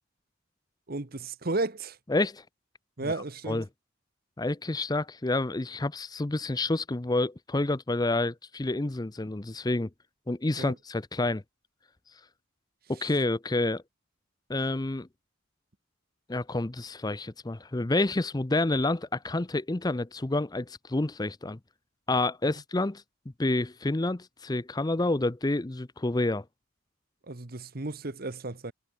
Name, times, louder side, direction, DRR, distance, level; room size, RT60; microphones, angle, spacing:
voice 1, 0.9-2.0 3.0-3.6 10.6-10.7 27.3-28.7, right 2 dB, 50° right, 1.3 m, -33 dB
voice 2, 2.1-2.4 3.0-3.1 3.5-3.7 4.4-9.9 10.3-11.4 12.9-13.8 14.5-15.1 16.3-21.6 22.1-23.0 23.4-26.4, left 2 dB, 20° left, 0.6 m, -28 dB
head